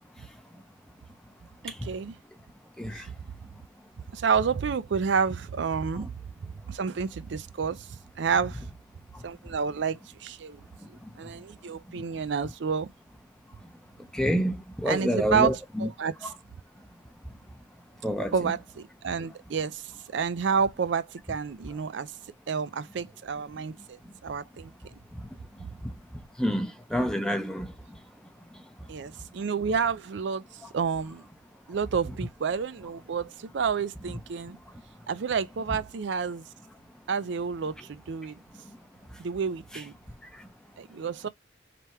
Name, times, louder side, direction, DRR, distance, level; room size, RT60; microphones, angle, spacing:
voice 1, 1.8-2.2 2.9-3.1 4.1-6.1 6.4-8.7 9.2-10.6 11.2-12.9 14.9-16.3 18.3-22.1 22.5-24.7 25.6-25.7 28.9-31.2 31.7-34.6 35.1-36.4 37.1-38.4 39.2-39.9 40.8-41.3, right 6 dB, 60° right, 0.4 m, -30 dB
voice 2, 14.1-15.9 18.0-18.3 25.2-25.3 26.4-27.7, equal, 5° left, 0.7 m, -28 dB
3.4 x 2.9 x 4.3 m
head